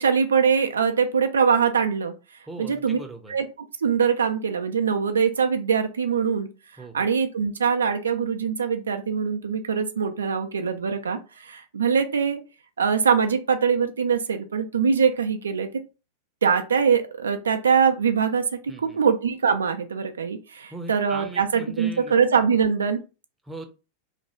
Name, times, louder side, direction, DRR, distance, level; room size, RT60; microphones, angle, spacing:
voice 1, 0.0-2.1 2.6-3.0 3.3-3.4 3.8-6.5 6.9-12.4 12.8-15.7 16.4-23.0, right 6 dB, 70° right, 7 dB, 0.3 m, -23 dB
voice 2, 2.5-3.4 6.8-7.1 18.7-19.0 20.7-22.1 23.4-23.7, right 2 dB, 10° right, 4 dB, 0.6 m, -39 dB
3.1 x 2.2 x 3.0 m, 0.31 s
figure-of-eight pair, 90°, 0 cm